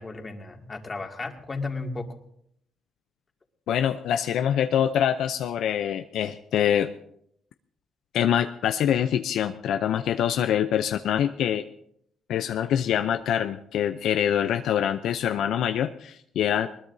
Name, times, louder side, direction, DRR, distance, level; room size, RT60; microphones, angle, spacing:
voice 1, 0.0-2.1, left 3 dB, 30° left, 2 dB, 2.3 m, -34 dB
voice 2, 3.7-6.9 8.1-11.6 12.3-16.7, left 9 dB, 80° left, 8 dB, 0.6 m, -25 dB
20.5 x 20.0 x 2.7 m, 0.71 s
cardioid pair, 90°, 0 cm